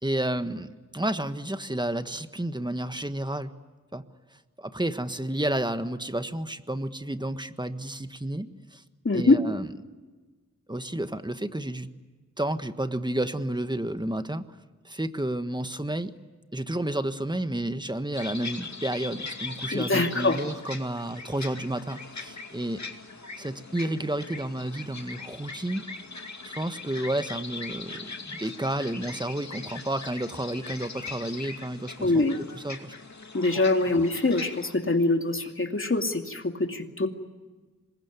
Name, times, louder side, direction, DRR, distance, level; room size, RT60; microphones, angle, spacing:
voice 1, 0.0-3.5 3.9-4.0 4.6-8.8 9.1-9.7 10.7-11.9 12.4-14.4 14.8-16.1 16.5-22.8 23.4-25.8 26.4-32.2 32.5-32.9 33.5-33.7, right 1 dB, 15° right, 9 dB, 1.5 m, -31 dB
voice 2, 9.0-9.4 19.7-20.4 32.0-32.4 33.3-37.1, left 2 dB, 45° left, 4 dB, 2.6 m, -24 dB
sound 1, 18.1-34.8, left 4 dB, 65° left, 2.6 m, -40 dB
26.5 x 21.5 x 9.7 m, 1.3 s
wide cardioid pair, 60°, 30 cm